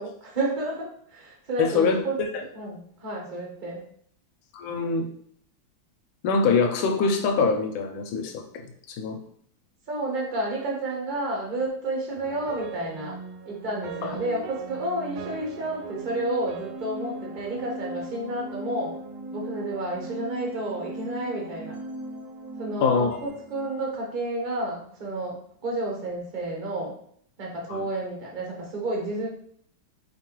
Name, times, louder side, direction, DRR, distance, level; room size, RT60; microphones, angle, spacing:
voice 1, 0.0-2.2 2.5-3.8 9.9-13.2 13.4-19.0 19.3-21.8 22.6-26.9 27.4-29.3, right 2 dB, 35° right, -2 dB, 0.9 m, -31 dB
voice 2, 1.6-2.0 4.5-5.1 6.2-8.4 8.9-9.2 14.0-14.2 22.8-23.2 27.7-27.9, left 4 dB, 90° left, 4 dB, 1.4 m, -23 dB
sound 1, 12.2-24.4, right 3 dB, 75° right, 1.2 m, -39 dB
4.4 x 2.9 x 3.0 m, 0.63 s
omnidirectional pair, 2.2 m